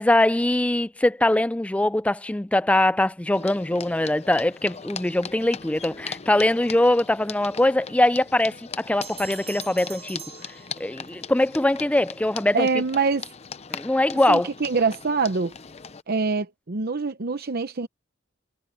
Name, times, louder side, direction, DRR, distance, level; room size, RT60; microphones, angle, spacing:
voice 1, 0.0-10.2 10.8-12.7 13.7-14.5, left 1 dB, 5° left, 0.3 m, -22 dB
sound 1, 3.3-16.0, left 6 dB, 35° left, 0.7 m, -40 dB
sound 2, 9.0-11.3, right 5 dB, 30° right, 3.2 m, -42 dB
voice 2, 12.5-13.3 14.3-15.5 16.1-17.9, right 4 dB, 50° right, 0.8 m, -24 dB
head